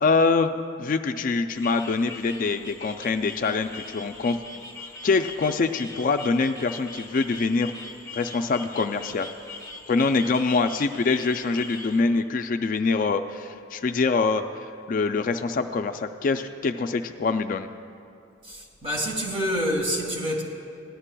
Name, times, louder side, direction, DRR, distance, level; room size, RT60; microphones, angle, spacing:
voice 1, 0.0-4.4 5.0-7.7 8.1-9.3 9.9-14.4 14.9-17.7, left 4 dB, 45° left, 7 dB, 0.3 m, -24 dB
sound 1, 1.5-12.0, left 3 dB, 20° left, 0.9 m, -41 dB
voice 2, 18.4-20.4, equal, 30° right, -1 dB, 1.8 m, -27 dB
17.5 x 11.0 x 2.2 m, 2.5 s
head